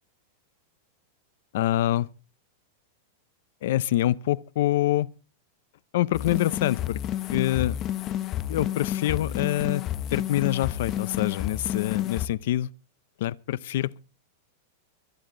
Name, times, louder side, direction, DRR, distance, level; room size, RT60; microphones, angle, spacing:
voice 1, 1.5-2.1 3.6-5.1 5.9-7.0 7.3-7.8 8.5-9.8 10.1-12.7 13.2-14.0, left 14 dB, 60° left, 0.6 m, -25 dB
sound 1, 6.1-12.3, left 11 dB, 25° left, 0.8 m, -30 dB
24.5 x 9.5 x 3.8 m
supercardioid pair, 165°, 0 cm